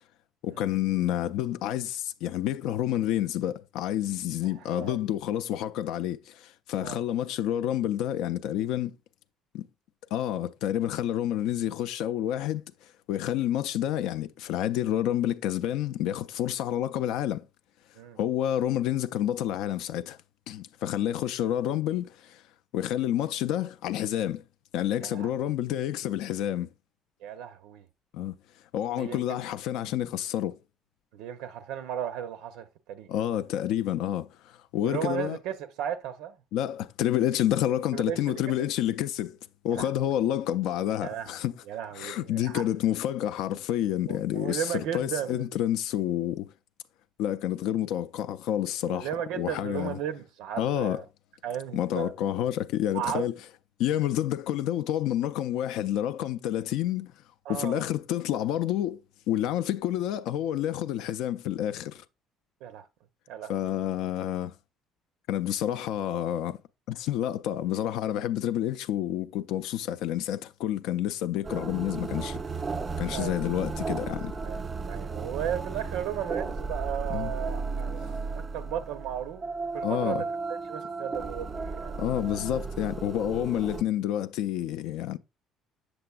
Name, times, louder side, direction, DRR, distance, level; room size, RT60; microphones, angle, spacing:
voice 1, 0.4-8.9 9.5-9.7 10.1-17.4 18.2-20.2 20.5-22.4 22.7-24.4 24.7-26.7 28.1-28.4 28.7-30.6 33.1-35.4 36.5-39.4 39.6-41.5 42.0-46.5 47.2-50.0 50.6-51.0 51.7-53.3 53.8-57.1 57.5-59.0 59.3-62.0 63.5-64.5 65.3-66.6 66.9-72.4 73.0-74.3 77.1-77.3 79.8-80.2 82.0-85.2, left 11 dB, 75° left, 0.3 m, -29 dB
voice 2, 4.4-5.0 6.8-7.0 17.9-18.2 25.0-25.3 27.2-27.9 28.9-29.4 31.1-33.1 34.8-36.4 37.9-38.7 39.7-39.9 41.0-41.3 41.7-42.7 44.1-45.6 48.9-51.1 51.4-52.1 52.9-53.3 57.4-57.9 62.6-62.9 63.3-63.7 73.1-73.4 74.4-79.4 79.7-80.3 80.7-82.0, right 10 dB, 85° right, 0.6 m, -35 dB
sound 1, 71.4-83.8, right 4 dB, 20° right, 0.3 m, -34 dB
7.6 x 6.8 x 2.3 m
cardioid pair, 165°, 0 cm